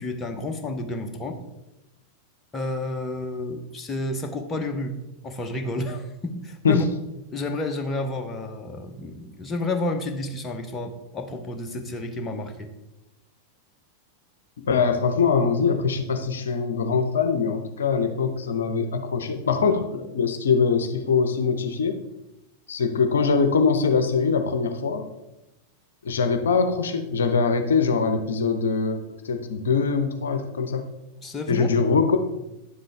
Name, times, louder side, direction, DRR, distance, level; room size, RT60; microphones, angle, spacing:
voice 1, 0.0-1.4 2.5-5.0 5.2-6.8 7.3-12.7 31.2-31.7, left 2 dB, 20° left, 5 dB, 0.9 m, -30 dB
voice 2, 14.6-22.0 22.7-25.1 26.0-30.8 31.5-32.2, left 5 dB, 65° left, 7 dB, 0.6 m, -23 dB
9.8 x 7.4 x 3.4 m, 0.94 s
figure-of-eight pair, 90°, 0 cm